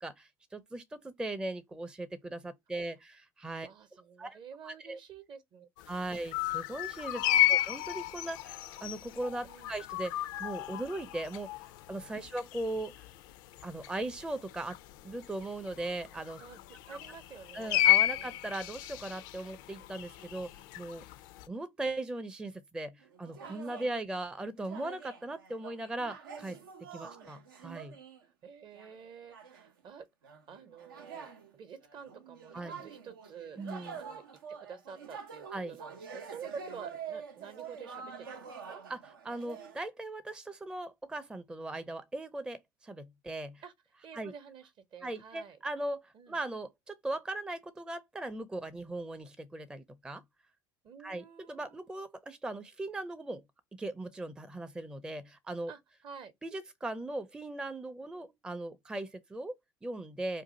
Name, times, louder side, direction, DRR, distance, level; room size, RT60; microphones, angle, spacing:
voice 1, 0.0-3.7 4.2-4.4 4.6-5.0 5.9-7.2 7.5-11.5 11.9-13.1 13.6-14.8 15.0-16.4 16.9-17.0 17.5-21.0 21.5-26.6 26.9-28.0 32.5-32.8 33.6-34.0 35.5-35.8 38.9-43.6 44.1-44.3 45.0-50.2 51.0-53.4 53.8-55.7 56.4-60.4, right 2 dB, 10° right, 0.4 m, -39 dB
voice 2, 3.6-5.7 7.1-7.5 9.4-9.7 12.2-12.3 16.4-18.4 23.8-24.1 27.0-27.3 28.4-38.8 43.6-43.7 44.0-45.6 46.1-46.4 50.8-51.9 55.7-56.3, right 6 dB, 45° right, 0.7 m, -50 dB
sound 1, 5.8-21.5, left 15 dB, 70° left, 0.4 m, -33 dB
sound 2, 23.0-24.0 24.6-28.2 28.7-29.0 29.3-29.7 30.2-39.8, right 6 dB, 85° right, 0.6 m, -46 dB
2.6 x 2.4 x 3.9 m
hypercardioid pair, 75°, 11 cm